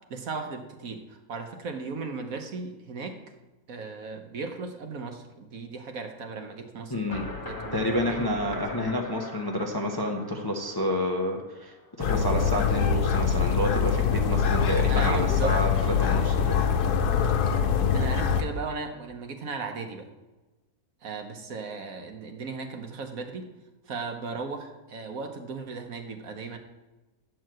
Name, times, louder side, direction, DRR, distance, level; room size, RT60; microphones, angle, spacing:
voice 1, 0.1-3.2 3.7-8.3 14.9-15.6 17.9-20.1 21.0-23.5 23.9-26.6, right 4 dB, 65° right, 5 dB, 1.4 m, -36 dB
voice 2, 6.9-7.3 7.7-17.0, left 1 dB, 20° left, 1 dB, 0.7 m, -29 dB
sound 1, 7.1-12.0, left 2 dB, 35° left, 1.2 m, -41 dB
sound 2, 12.0-18.4, left 7 dB, 85° left, 1.4 m, -24 dB
10.0 x 4.7 x 7.7 m, 1.1 s
omnidirectional pair, 1.6 m